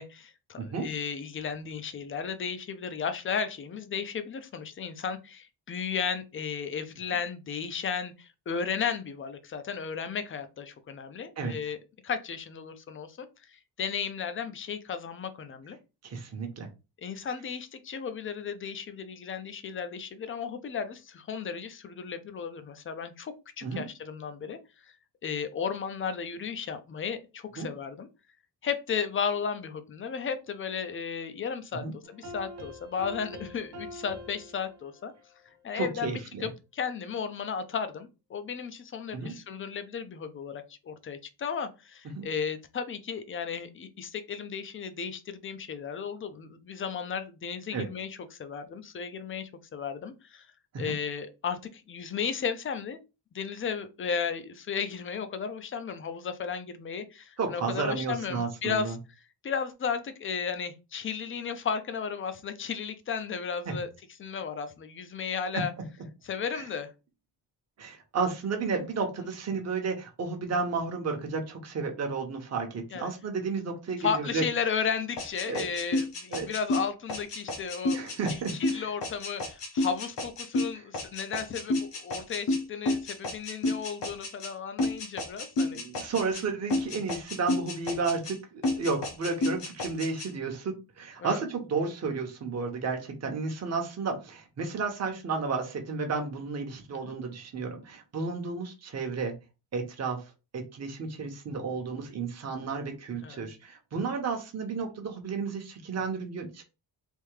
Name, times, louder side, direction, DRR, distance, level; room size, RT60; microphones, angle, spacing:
voice 1, 0.0-11.8 12.0-15.8 17.0-24.9 25.2-28.1 28.6-35.1 35.6-50.5 50.8-53.0 53.3-59.0 59.4-63.9 64.2-65.7 66.2-66.9 72.9-73.1 74.0-78.0 78.3-85.8 91.2-91.4 96.9-97.2 103.2-103.4, left 6 dB, 30° left, 10 dB, 0.4 m, -34 dB
voice 2, 0.6-0.9 11.4-11.5 16.0-16.7 23.6-23.8 27.6-27.7 31.7-31.9 35.7-36.5 39.1-39.3 42.1-42.3 47.7-47.9 50.7-50.9 57.4-58.9 63.7-63.8 65.5-65.6 66.5-66.6 67.8-74.4 75.5-75.7 76.3-76.5 77.9-78.9 80.7-80.8 85.7-99.3 99.7-100.2 100.5-106.6, right 4 dB, 35° right, 3 dB, 0.8 m, -32 dB
sound 1, 32.0-36.2, equal, 65° right, 1.0 m, -45 dB
sound 2, 75.2-84.5 84.8-86.4 86.7-88.4 88.6-90.3, left 2 dB, 75° left, 1.0 m, -31 dB
3.5 x 2.7 x 3.1 m, 0.29 s
wide cardioid pair, 165°, 43 cm